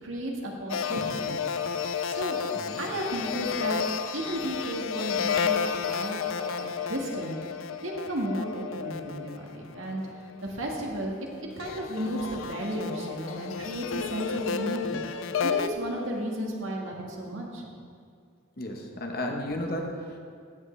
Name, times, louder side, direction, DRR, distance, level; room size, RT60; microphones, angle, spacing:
voice 1, 0.0-1.5 1.8-2.4 2.8-3.8 4.1-7.4 7.8-11.1 11.6-15.0 15.4-17.7, right 1 dB, 75° right, -1 dB, 1.7 m, -33 dB
sound 1, 0.7-10.3 11.0-15.7, left 6 dB, 75° left, 0.4 m, -32 dB
voice 2, 18.6-20.2, left 1 dB, 45° left, 2 dB, 1.1 m, -33 dB
15.5 x 7.9 x 3.3 m, 2.2 s
head